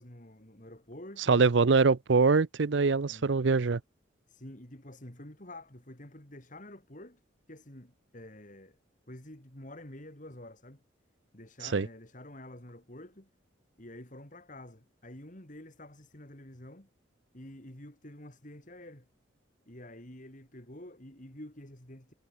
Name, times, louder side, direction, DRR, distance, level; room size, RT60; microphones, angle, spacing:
voice 1, 0.0-1.6 3.0-3.3 4.3-7.2 7.5-8.8 9.1-10.8 11.3-13.3 13.8-16.9 17.3-19.1 19.7-22.1, left 1 dB, 40° left, 3.5 m, -48 dB
voice 2, 1.3-3.8 11.7-11.9, right 4 dB, 65° right, 0.6 m, -23 dB
head